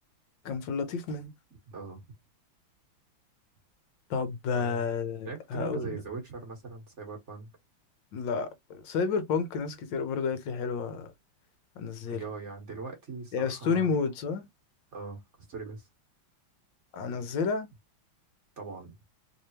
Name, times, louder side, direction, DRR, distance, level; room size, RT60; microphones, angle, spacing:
voice 1, 0.4-1.3 4.1-6.0 8.1-11.1 11.8-12.2 13.3-14.5 16.9-17.7, left 5 dB, 65° left, 1.5 m, -31 dB
voice 2, 1.7-2.0 4.5-4.8 5.2-7.5 12.1-13.9 14.9-15.2 15.5-15.9 18.6-18.9, right 4 dB, 40° right, 1.3 m, -40 dB
3.6 x 3.3 x 2.8 m
omnidirectional pair, 2.3 m